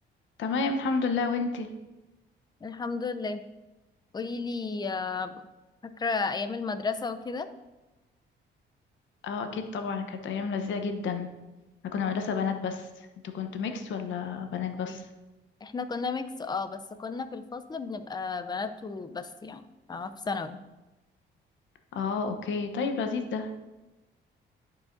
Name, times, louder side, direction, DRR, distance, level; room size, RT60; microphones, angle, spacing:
voice 1, 0.4-1.7 9.2-11.3 11.9-13.1 13.3-15.0 21.9-23.5, left 5 dB, 70° left, 6 dB, 0.8 m, -30 dB
voice 2, 2.6-3.4 4.1-5.4 5.8-7.5 14.9-15.0 15.6-20.6, left 4 dB, 20° left, 10 dB, 0.5 m, -33 dB
11.0 x 4.8 x 2.6 m, 1.1 s
cardioid pair, 90°, 20 cm